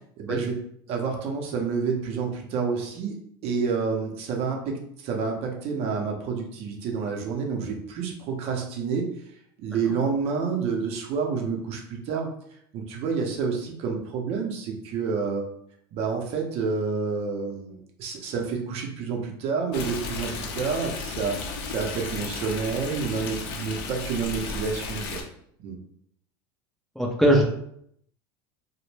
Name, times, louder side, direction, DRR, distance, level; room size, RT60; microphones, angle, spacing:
voice 1, 0.2-0.6 0.9-3.2 3.4-9.1 9.6-12.3 12.7-15.4 15.9-21.4 21.7-25.2 25.6-25.7, right 5 dB, 50° right, 1 dB, 0.6 m, -29 dB
Stream, 19.7-25.2, left 4 dB, 70° left, 0.5 m, -34 dB
voice 2, 27.0-27.4, right 1 dB, ahead, -2 dB, 0.4 m, -19 dB
2.1 x 2.0 x 3.1 m, 0.69 s
supercardioid pair, 105°, 13 cm